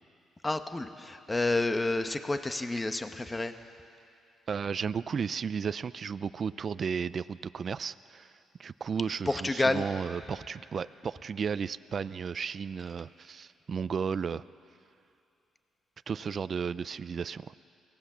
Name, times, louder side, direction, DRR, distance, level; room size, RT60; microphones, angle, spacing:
voice 1, 0.4-3.5 9.3-9.8, left 2 dB, 20° left, 8 dB, 1.1 m, -29 dB
voice 2, 4.5-8.3 8.6-14.4 16.1-17.5, right 6 dB, 45° right, 15 dB, 0.4 m, -34 dB
24.5 x 17.5 x 7.3 m, 2.5 s
cardioid pair, 90°, 0 cm